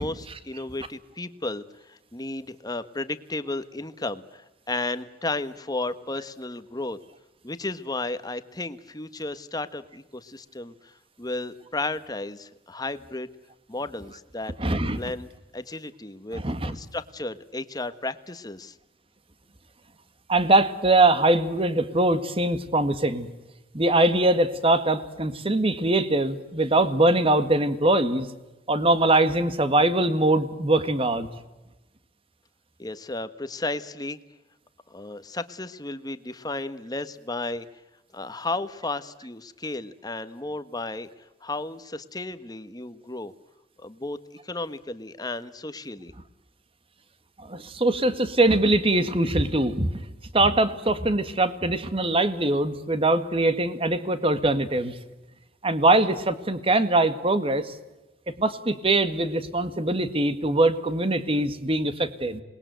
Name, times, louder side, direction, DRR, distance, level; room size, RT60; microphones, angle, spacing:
voice 1, 0.0-7.0 7.4-10.9 11.2-13.3 13.7-14.5 15.0-15.3 15.5-18.7 32.8-34.2 34.9-37.7 38.1-41.1 41.4-43.3 43.8-46.1, left 2 dB, 20° left, 11 dB, 1.3 m, -33 dB
voice 2, 14.6-15.0 16.3-16.8 20.3-23.3 23.7-28.3 28.7-31.3 47.4-49.9 50.3-54.9 55.6-57.8 58.3-62.4, right 2 dB, 30° right, 11 dB, 1.9 m, -22 dB
27.5 x 21.0 x 9.3 m, 1.0 s
head